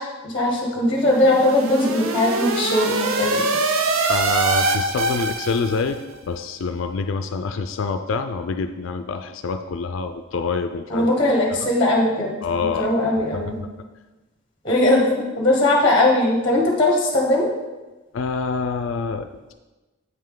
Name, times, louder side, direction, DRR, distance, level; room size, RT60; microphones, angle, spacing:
voice 1, 0.0-3.4 10.9-13.6 14.6-17.5, left 1 dB, 25° left, -1 dB, 1.1 m, -20 dB
sound 1, 1.0-6.0, right 3 dB, 80° right, 0.6 m, -24 dB
voice 2, 4.1-6.0 6.3-11.1 12.4-12.9 18.1-19.5, left 4 dB, 65° left, 8 dB, 0.4 m, -26 dB
8.2 x 5.5 x 3.7 m, 1.1 s
head